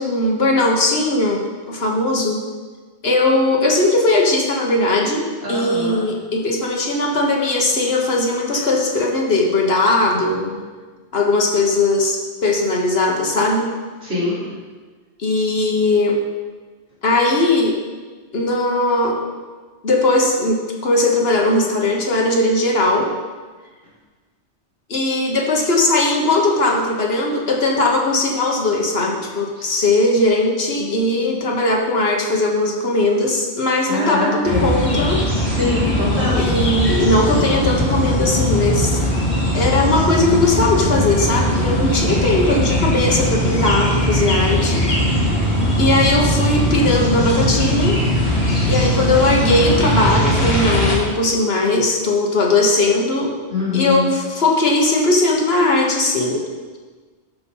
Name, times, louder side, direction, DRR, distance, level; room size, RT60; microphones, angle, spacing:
voice 1, 0.0-1.4 1.7-2.4 3.0-5.2 5.5-10.6 11.1-13.7 15.2-16.1 17.0-17.7 18.3-19.3 19.8-23.1 24.9-35.2 36.4-39.0 39.5-44.8 45.8-48.0 48.7-53.3 53.7-56.4, left 2 dB, 65° left, 0 dB, 1.5 m, -18 dB
voice 2, 5.4-6.0 8.5-8.6 14.0-14.4 29.6-29.7 33.9-34.7 35.4-36.5 53.5-54.1, left 3 dB, 80° right, -8 dB, 3.5 m, -23 dB
sound 1, 34.4-50.9, equal, 40° left, 1.8 m, -19 dB
12.0 x 4.3 x 5.4 m, 1.4 s
omnidirectional pair, 1.1 m